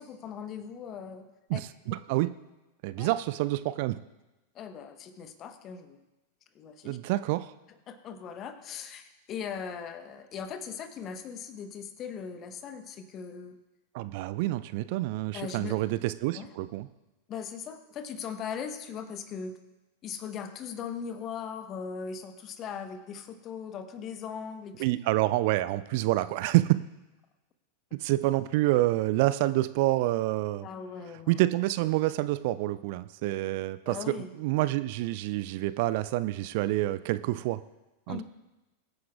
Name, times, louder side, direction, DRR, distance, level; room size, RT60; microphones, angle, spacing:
voice 1, 0.0-1.6 3.0-3.1 4.5-6.0 6.5-7.0 7.9-13.6 15.3-15.8 16.3-16.5 17.3-19.6 20.0-24.8 30.6-31.4 33.8-34.3 38.1-38.2, left 6 dB, 30° left, 10 dB, 1.1 m, -39 dB
voice 2, 1.5-2.3 2.8-4.0 6.8-7.5 13.9-16.9 24.8-26.8 27.9-30.7 31.3-37.6 38.1-38.2, right 17 dB, 50° right, 15 dB, 0.4 m, -27 dB
22.5 x 9.5 x 2.4 m, 1.0 s
figure-of-eight pair, 90°, 0 cm